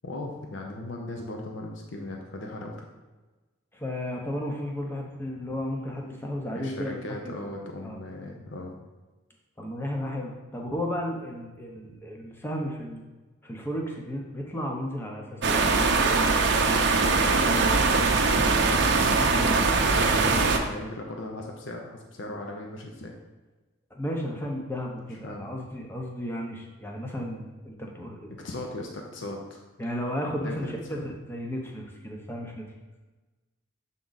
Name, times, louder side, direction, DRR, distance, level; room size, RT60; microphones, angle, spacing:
voice 1, 0.0-2.9 6.5-8.7 14.3-14.4 15.2-15.3 18.6-19.6 19.9-23.1 25.2-25.5 28.3-29.6 30.4-30.7, left 1 dB, 60° left, 1 dB, 0.7 m, -38 dB
voice 2, 3.7-7.5 7.8-8.0 9.6-13.1 13.4-16.2 23.9-28.3 29.8-32.7, equal, 10° left, 0 dB, 0.8 m, -34 dB
sound 1, 15.4-20.6, right 4 dB, 55° right, 0.6 m, -22 dB
7.2 x 3.8 x 3.9 m, 1.2 s
head